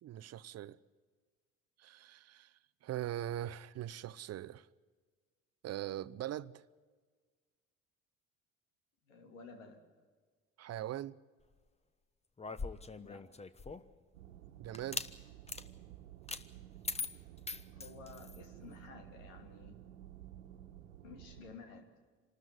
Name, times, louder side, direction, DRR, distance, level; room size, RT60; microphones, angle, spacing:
voice 1, 0.0-0.8 1.8-2.5 2.8-4.7 5.6-6.6 10.6-11.2 14.6-15.0, right 12 dB, 40° right, 0.7 m, -41 dB
voice 2, 9.1-9.8 13.0-13.3 17.7-19.8 21.0-21.9, left 4 dB, 80° left, 3.0 m, -53 dB
sound 1, 12.4-14.0 14.7-15.1 15.5-15.6 16.3-16.4 16.8-18.4, left 4 dB, 15° left, 1.1 m, -41 dB
sound 2, 14.1-21.5, right 12 dB, 75° right, 1.5 m, -53 dB
26.0 x 13.5 x 9.4 m
hypercardioid pair, 60°, 39 cm